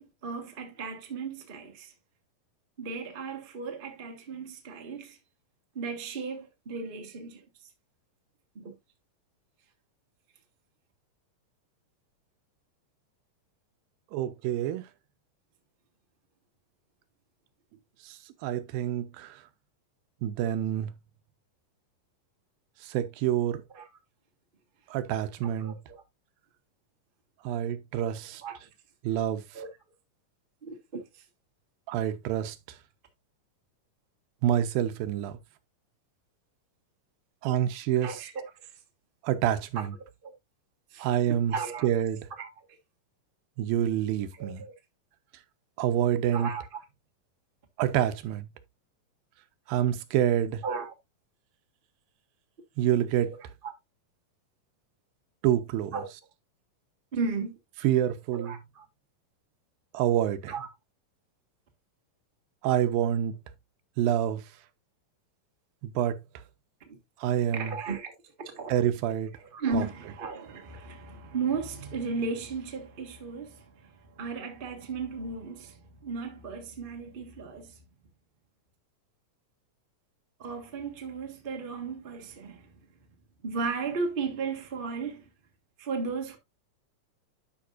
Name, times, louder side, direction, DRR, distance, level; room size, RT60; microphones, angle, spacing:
voice 1, 0.0-1.9 2.8-5.2 5.7-7.4 8.5-8.7 23.7-23.9 25.6-26.0 28.4-28.6 29.5-29.7 30.6-31.0 38.0-38.4 39.7-39.8 40.2-40.3 40.9-41.1 41.5-41.9 42.4-42.5 44.4-44.7 46.3-46.8 50.6-50.9 53.6-53.7 55.9-56.1 57.1-57.5 58.3-58.8 60.5-60.7 66.8-67.0 67.5-68.1 68.4-68.7 69.5-77.7 80.4-82.7 83.4-85.3 85.8-86.4, right 4 dB, 55° right, 0.5 m, -35 dB
voice 2, 14.1-14.9 18.0-19.4 20.2-20.9 22.8-23.6 24.9-25.8 27.4-28.4 29.0-29.4 31.9-32.6 34.4-35.4 37.4-38.2 39.2-39.9 41.0-41.5 41.8-42.3 43.6-44.6 45.8-46.5 47.8-48.5 49.7-50.6 52.8-53.3 55.4-56.0 57.8-58.6 59.9-60.5 62.6-63.3 64.0-64.4 65.8-66.2 67.2-67.8 68.7-69.3 69.7-69.8, right 11 dB, 90° right, 2.6 m, -27 dB
11.5 x 5.2 x 2.5 m
omnidirectional pair, 4.0 m